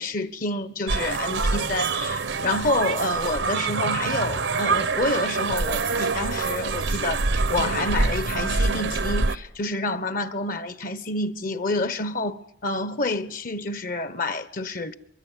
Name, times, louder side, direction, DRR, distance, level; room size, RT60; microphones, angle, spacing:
voice 1, 0.0-14.9, left 2 dB, 50° left, 1.3 m, -28 dB
sound 1, 0.9-9.4, right 4 dB, 85° right, 1.1 m, -25 dB
24.0 x 23.0 x 9.2 m
head